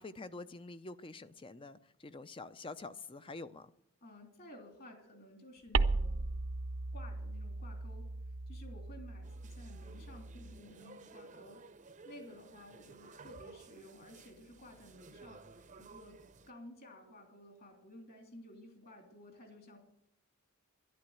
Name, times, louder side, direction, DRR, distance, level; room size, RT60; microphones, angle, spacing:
voice 1, 0.0-3.7, left 3 dB, 25° left, 0.5 m, -47 dB
voice 2, 4.0-6.2 6.9-8.1 8.5-11.6 12.0-16.2 16.5-19.8, left 1 dB, 45° left, 3.2 m, -54 dB
sound 1, 5.7-10.6, right 3 dB, 75° right, 0.7 m, -36 dB
sound 2, 9.2-16.5, right 3 dB, 35° right, 0.7 m, -55 dB
12.0 x 11.0 x 8.0 m
head